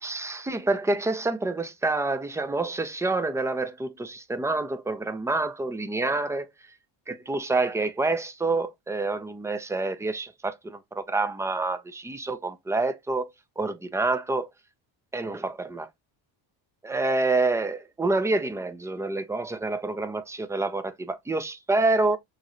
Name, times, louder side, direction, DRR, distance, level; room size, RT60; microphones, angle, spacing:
voice 1, 0.0-6.5 7.1-13.3 13.6-14.5 15.1-15.9 16.8-22.2, right 3 dB, 5° right, 0.3 m, -27 dB
6.3 x 3.1 x 2.6 m
cardioid pair, 150°, 46 cm